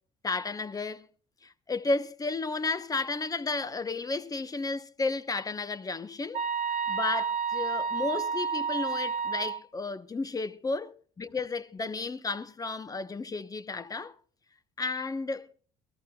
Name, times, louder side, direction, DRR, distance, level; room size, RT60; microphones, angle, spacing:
voice 1, 0.2-1.1 1.4-10.9 11.2-14.1 14.8-15.5, left 3 dB, 20° left, 0.9 m, -33 dB
sound 1, 6.3-9.6, right 6 dB, 55° right, 1.2 m, -30 dB
21.5 x 13.5 x 2.3 m
cardioid pair, 110°, 17 cm